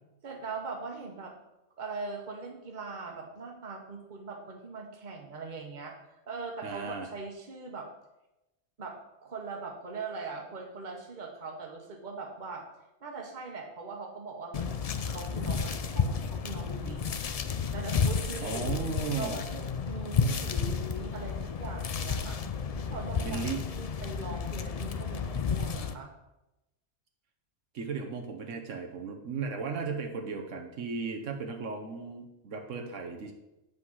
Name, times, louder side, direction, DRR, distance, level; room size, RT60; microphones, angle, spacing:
voice 1, 0.2-1.3 1.8-7.9 8.8-12.6 13.0-14.8 15.1-17.0 17.7-18.7 19.1-22.4 22.8-26.1, right 4 dB, 40° right, 1 dB, 1.3 m, -41 dB
voice 2, 6.6-7.1 18.4-19.4 23.2-23.6 27.7-33.3, right 4 dB, 80° right, 3 dB, 1.3 m, -35 dB
sound 1, 14.5-25.9, left 5 dB, 60° left, 0.4 m, -32 dB
8.1 x 5.3 x 5.5 m, 0.95 s
omnidirectional pair, 1.3 m